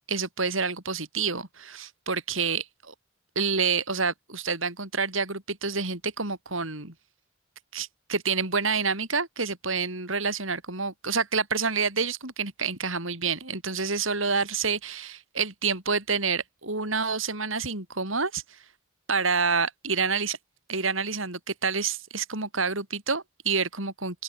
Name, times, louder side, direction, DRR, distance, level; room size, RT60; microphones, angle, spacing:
voice 1, 0.1-2.9 3.4-6.9 7.7-18.6 19.1-20.4 20.7-24.2, right 5 dB, 70° right, 7.2 m, -28 dB
open air
head